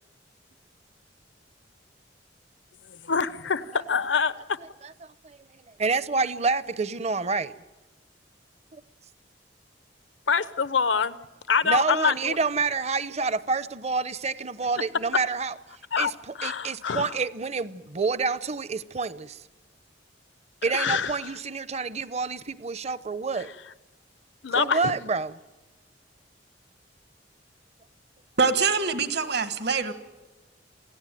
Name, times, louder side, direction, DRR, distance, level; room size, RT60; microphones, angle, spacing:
voice 1, 2.9-4.3 10.3-11.2 11.5-12.4 15.9-16.1 16.4-17.1 20.7-21.2 23.4-23.5 24.4-24.9, left 6 dB, 85° left, 15 dB, 0.9 m, -25 dB
voice 2, 5.8-7.5 8.7-8.8 11.6-15.5 16.0-16.1 16.4-19.4 20.6-23.5 24.5-25.4, right 4 dB, 35° right, 16 dB, 0.7 m, -28 dB
voice 3, 28.4-29.9, right 5 dB, 65° right, 10 dB, 1.5 m, -24 dB
27.5 x 16.5 x 9.2 m, 1.1 s
head